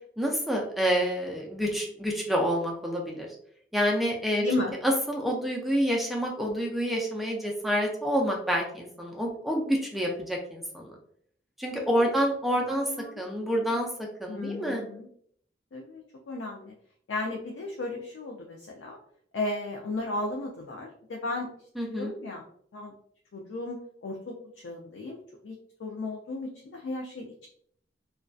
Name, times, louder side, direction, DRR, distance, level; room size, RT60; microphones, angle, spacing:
voice 1, 0.2-3.3 3.7-4.4 4.8-10.9 11.6-12.9 13.2-13.9 14.2-14.8 21.8-22.1, equal, ahead, -1 dB, 0.3 m, -28 dB
voice 2, 11.8-12.1 12.6-13.9 14.3-15.1 15.7-16.7 17.1-19.0 19.3-21.5 21.8-22.4 22.7-22.9 23.3-27.5, left 2 dB, 80° left, 0 dB, 0.4 m, -35 dB
2.5 x 2.2 x 2.3 m, 0.64 s
head